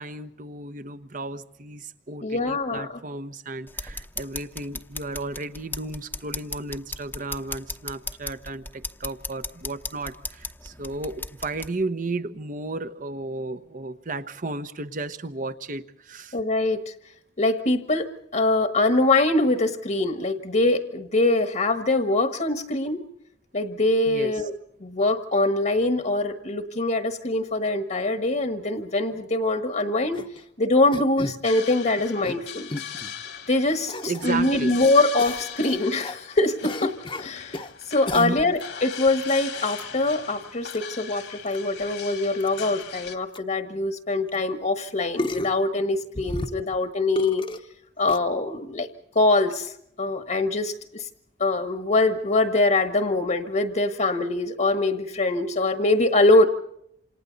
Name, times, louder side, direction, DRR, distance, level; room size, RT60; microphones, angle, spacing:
voice 1, 0.0-16.4 24.1-24.4 34.1-34.8 38.1-38.5, right 2 dB, 50° right, 11 dB, 1.1 m, -33 dB
voice 2, 2.2-2.9 16.3-16.9 17.4-23.0 23.5-24.5 24.8-30.2 30.6-32.7 33.5-47.5 48.0-48.9 49.1-49.7 50.0-51.1 51.4-56.5, left 2 dB, 50° left, 7 dB, 1.5 m, -23 dB
sound 1, 3.7-11.7, left 3 dB, 10° left, 1.0 m, -37 dB
sound 2, 30.1-30.4 30.9-31.4 32.0-32.4 32.7-33.1 33.9-34.3 35.2-36.2 36.6-37.7 38.1-38.6 39.2-39.4 39.7-39.8 40.7-40.8 41.5-41.6 41.8-41.9 42.4-42.5 43.1-43.2 43.3-43.4 44.3-44.4 45.2-45.6 46.1-46.8 47.2-47.6 48.1-48.2, left 1 dB, 30° left, 1.1 m, -32 dB
sound 3, 31.4-43.2, left 8 dB, 80° left, 2.5 m, -39 dB
28.0 x 27.0 x 4.1 m, 0.74 s
head